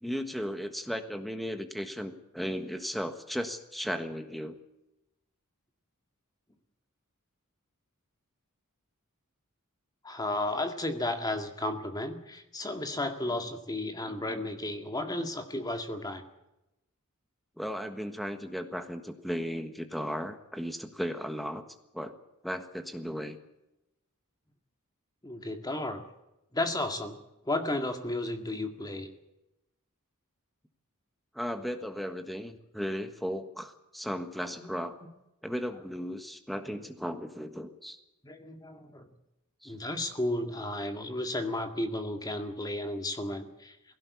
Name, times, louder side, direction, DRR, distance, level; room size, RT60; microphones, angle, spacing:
voice 1, 0.0-4.6 17.6-21.6 21.9-22.1 22.4-23.4 31.3-34.9 35.4-38.0 39.6-39.8, equal, ahead, 8 dB, 1.4 m, -35 dB
voice 2, 10.0-16.2 25.2-26.0 26.5-27.2 27.5-29.1 34.6-34.7 38.2-39.1 39.7-43.8, left 1 dB, 15° left, 6 dB, 2.0 m, -33 dB
19.0 x 17.0 x 8.4 m, 0.91 s
head